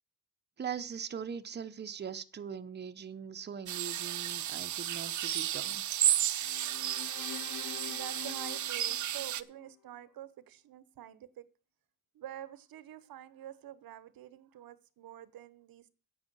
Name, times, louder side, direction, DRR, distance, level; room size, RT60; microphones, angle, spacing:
voice 1, 0.6-5.8, right 7 dB, 30° right, 0.8 m, -41 dB
sound 1, 3.7-9.4, right 11 dB, 60° right, 0.6 m, -33 dB
sound 2, 6.4-9.8, left 14 dB, 80° left, 0.7 m, -47 dB
voice 2, 7.9-11.4 12.1-15.9, right 11 dB, 85° right, 1.0 m, -47 dB
9.7 x 8.7 x 6.2 m
cardioid pair, 115°, 35 cm